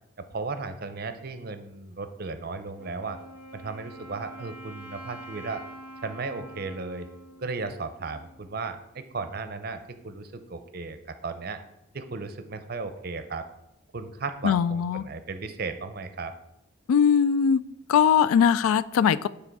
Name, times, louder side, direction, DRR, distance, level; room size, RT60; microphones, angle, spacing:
voice 1, 0.3-3.2 3.5-5.6 6.0-7.1 7.4-11.6 11.9-13.5 13.9-16.3, right 4 dB, 45° right, 9 dB, 0.6 m, -35 dB
Wind instrument woodwind instrument, 2.8-8.5, right 1 dB, 55° left, 2.1 m, -45 dB
voice 2, 14.4-15.0 16.9-17.6 17.9-19.3, left 7 dB, 85° left, 17 dB, 0.3 m, -20 dB
9.2 x 3.4 x 4.7 m, 0.91 s
head